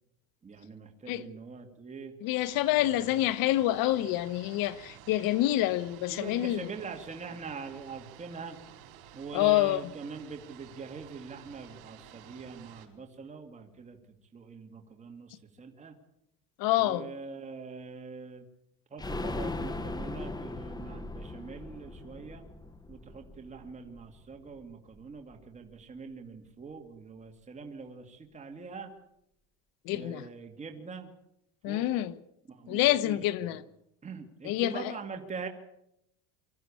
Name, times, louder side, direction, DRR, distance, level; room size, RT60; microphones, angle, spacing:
voice 1, 0.4-2.1 2.8-3.1 6.1-8.6 9.1-14.0 14.3-15.9 16.8-18.5 18.9-22.4 22.9-28.9 29.9-31.1 31.7-31.9 32.5-33.6 34.0-35.5, right 5 dB, 20° right, 2.2 m, -43 dB
voice 2, 2.2-6.7 9.3-9.8 16.6-17.1 29.8-30.2 31.6-32.2 32.7-33.6 34.4-34.7, left 15 dB, 70° left, 1.2 m, -27 dB
sound 1, 2.4-12.9, right 10 dB, 80° right, 4.8 m, -52 dB
sound 2, 19.0-24.6 24.9-25.0 25.3-25.4, left 2 dB, 10° left, 1.1 m, -39 dB
24.5 x 14.0 x 8.6 m
cardioid pair, 140°, 36 cm